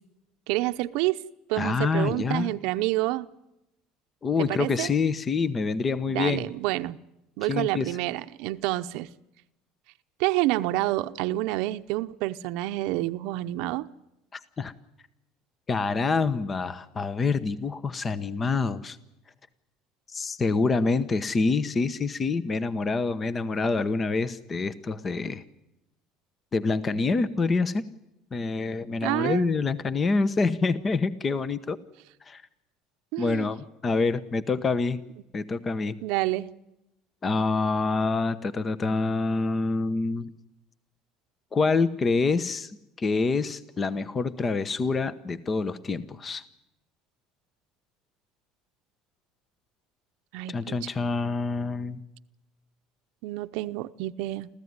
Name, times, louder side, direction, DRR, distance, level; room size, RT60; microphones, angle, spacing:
voice 1, 0.5-1.2 1.5-3.3 4.5-4.9 6.1-7.0 7.4-9.1 10.2-13.9 29.0-29.5 33.1-33.5 36.0-36.5 50.3-50.9 53.2-54.5, right 17 dB, 75° right, 10 dB, 0.7 m, -28 dB
voice 2, 1.6-2.5 4.2-6.4 7.5-8.0 14.3-14.7 15.7-19.0 20.1-25.4 26.5-27.8 28.3-31.8 32.3-32.4 33.2-35.0 35.3-36.0 37.2-40.3 41.5-42.7 43.0-46.4 50.5-52.0, left 4 dB, 25° left, 15 dB, 0.9 m, -26 dB
26.5 x 15.0 x 9.6 m, 0.89 s
cardioid pair, 130°, 0 cm